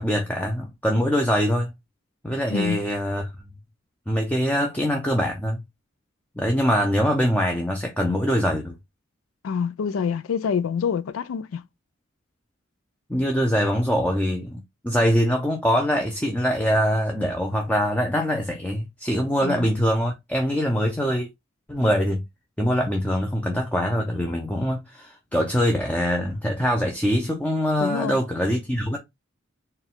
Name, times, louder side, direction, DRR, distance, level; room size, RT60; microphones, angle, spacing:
voice 1, 0.0-1.7 2.2-3.3 4.1-5.6 6.4-8.8 13.1-21.3 21.7-22.2 22.6-29.0, equal, 5° left, 0.5 m, -23 dB
voice 2, 2.5-2.8 9.4-11.6 19.4-19.7 27.8-28.2, left 6 dB, 80° left, 0.4 m, -26 dB
4.4 x 2.3 x 3.7 m
head